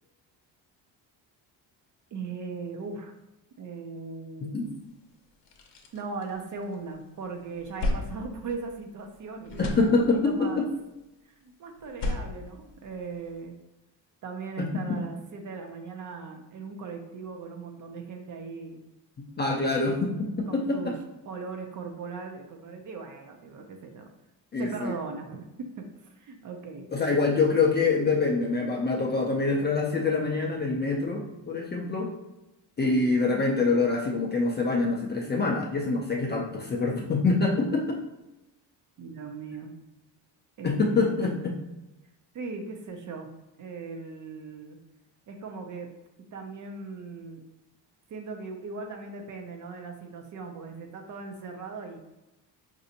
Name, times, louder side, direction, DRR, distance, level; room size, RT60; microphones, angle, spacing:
voice 1, 2.1-3.1 3.6-4.7 5.9-10.6 11.2-13.5 14.2-18.8 20.5-20.9 21.3-24.1 24.6-27.2 39.0-39.7 40.6-41.1 42.3-43.3 43.6-44.8 45.3-45.9 46.3-47.4 48.1-52.0, right 4 dB, 45° right, 4 dB, 0.5 m, -39 dB
sound 1, 4.8-4.9 5.3-6.9 7.3-9.2 9.4-10.5 11.8-13.4, left 2 dB, 65° left, 0.7 m, -35 dB
voice 2, 9.6-10.7 14.6-15.0 19.4-21.0 24.5-25.0 26.9-32.1 32.8-38.0 40.6-41.6, left 3 dB, 25° left, -1 dB, 0.4 m, -25 dB
4.1 x 2.6 x 2.7 m, 0.96 s
cardioid pair, 115°, 46 cm